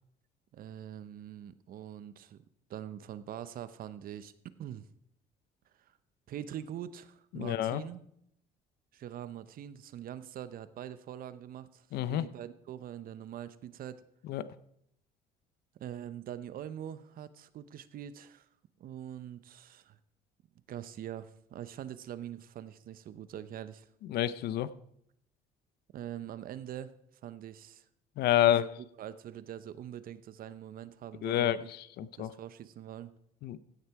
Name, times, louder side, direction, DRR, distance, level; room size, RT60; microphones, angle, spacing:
voice 1, 0.5-2.4 2.7-4.9 5.8-6.0 6.3-8.0 8.9-14.0 15.8-18.5 18.8-20.0 20.7-23.9 25.9-26.9 27.2-27.8 28.4-28.5 29.0-31.7 32.2-33.1, right 10 dB, 60° right, 14 dB, 0.8 m, -43 dB
voice 2, 7.3-7.8 11.9-12.3 14.3-14.5 24.1-24.7 28.2-28.7 31.2-32.3 33.4-33.6, left 12 dB, 70° left, 16 dB, 0.6 m, -28 dB
16.0 x 6.7 x 4.7 m, 0.74 s
cardioid pair, 110°, 17 cm